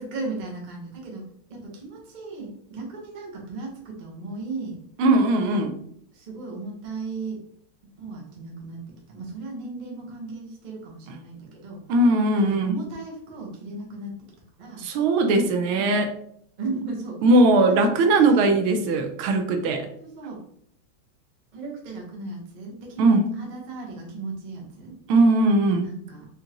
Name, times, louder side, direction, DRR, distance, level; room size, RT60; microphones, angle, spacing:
voice 1, 0.0-4.8 5.4-5.7 6.1-7.4 8.0-8.8 9.1-11.8 12.4-14.2 14.6-14.8 15.8-16.1 16.6-17.2 17.6-17.9 18.2-18.5 20.0-20.5 21.5-24.9 25.8-26.3, right 3 dB, 60° right, -1 dB, 0.4 m, -36 dB
voice 2, 5.0-5.7 11.9-12.8 14.8-16.1 17.2-19.9 23.0-23.3 25.1-25.9, right 2 dB, 80° right, 6 dB, 1.4 m, -19 dB
5.1 x 2.5 x 2.9 m, 0.65 s
omnidirectional pair, 2.4 m